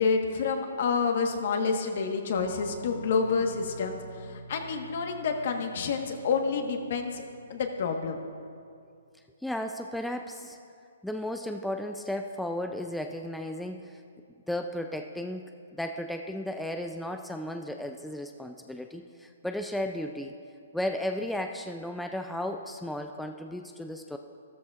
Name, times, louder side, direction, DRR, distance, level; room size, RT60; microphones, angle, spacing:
voice 1, 0.0-7.2 7.5-8.2, left 5 dB, 55° left, 4 dB, 1.2 m, -28 dB
sound 1, 2.4-8.7, equal, 80° left, 1.0 m, -48 dB
voice 2, 9.4-10.6 11.0-14.0 14.5-15.5 15.7-20.3 20.7-24.2, left 1 dB, ahead, 5 dB, 0.3 m, -34 dB
14.0 x 13.0 x 2.4 m, 2.4 s
hypercardioid pair, 150°, 0 cm